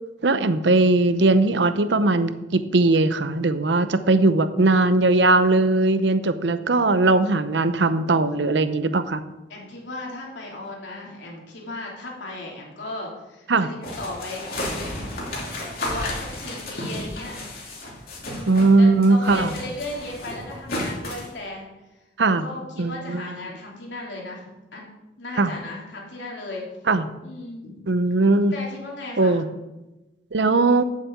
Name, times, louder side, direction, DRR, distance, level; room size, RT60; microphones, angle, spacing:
voice 1, 0.2-9.2 13.5-13.7 18.5-19.5 22.2-22.5 22.8-23.2 25.4-25.5 26.9-27.1 27.9-28.5 29.2-29.5 30.3-30.8, right 2 dB, 80° right, 12 dB, 0.7 m, -19 dB
voice 2, 9.5-14.7 15.7-17.4 18.2-21.7 22.4-24.8 25.2-26.7 27.2-27.8 28.5-29.4, left 2 dB, 85° left, -2 dB, 3.3 m, -36 dB
sound 1, 13.8-18.7 19.0-21.3, left 1 dB, 55° left, 3.1 m, -32 dB
8.1 x 7.5 x 7.9 m, 1.1 s
head